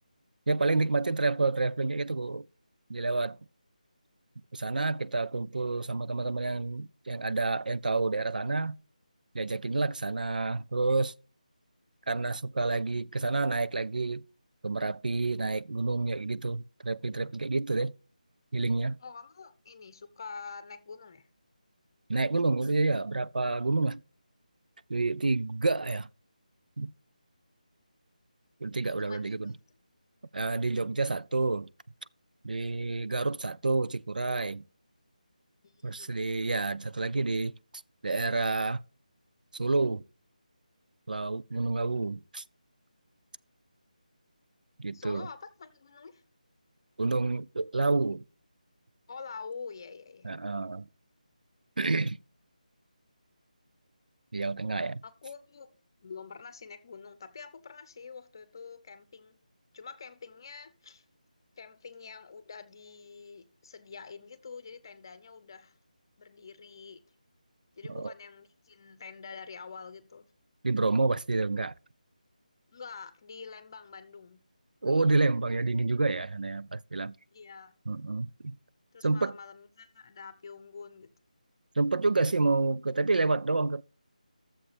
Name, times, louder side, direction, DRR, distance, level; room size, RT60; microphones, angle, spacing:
voice 1, 0.5-2.5 2.9-3.4 4.5-8.8 9.3-11.1 12.1-14.2 14.6-17.9 18.5-19.0 22.1-24.0 24.9-26.1 26.8-26.9 28.6-29.5 30.3-31.7 32.4-34.6 35.8-37.5 38.0-38.8 39.5-40.0 41.1-42.4 44.8-45.3 47.0-48.2 50.2-50.9 51.8-52.2 54.3-55.0 67.9-68.1 70.6-71.7 74.8-77.1 77.9-78.6 79.0-79.3 81.8-83.8, right 3 dB, 85° right, 0.4 m, -29 dB
voice 2, 19.0-21.3 28.9-29.6 35.6-36.1 44.9-46.2 49.1-50.4 55.0-55.7 56.0-59.4 59.7-61.0 61.6-65.8 66.2-67.0 67.8-70.3 72.7-74.4 77.3-77.8 78.9-81.1, left 5 dB, 30° left, 0.8 m, -46 dB
13.0 x 7.3 x 3.4 m
figure-of-eight pair, 170°, 4 cm